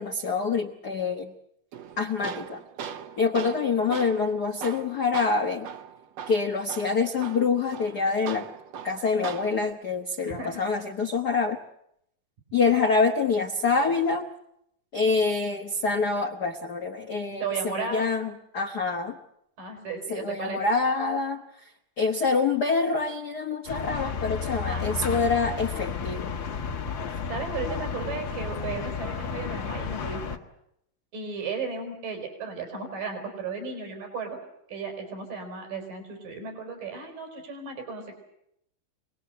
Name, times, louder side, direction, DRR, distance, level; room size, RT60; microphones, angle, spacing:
voice 1, 0.0-1.3 2.0-2.6 3.2-5.7 6.3-8.5 8.8-11.6 12.5-14.3 14.9-19.2 20.1-21.7 22.0-26.3, left 4 dB, 85° left, 4 dB, 0.8 m, -26 dB
Tools, 1.7-9.7, right 8 dB, 65° right, 1.8 m, -40 dB
voice 2, 10.2-10.6 17.4-18.0 19.6-20.6 24.7-25.2 27.3-30.4 31.1-34.4 34.7-38.1, right 4 dB, 85° right, 4 dB, 6.2 m, -35 dB
sound 1, 23.7-30.4, left 5 dB, 50° left, 1.5 m, -32 dB
26.0 x 19.5 x 7.8 m, 0.77 s
omnidirectional pair, 3.8 m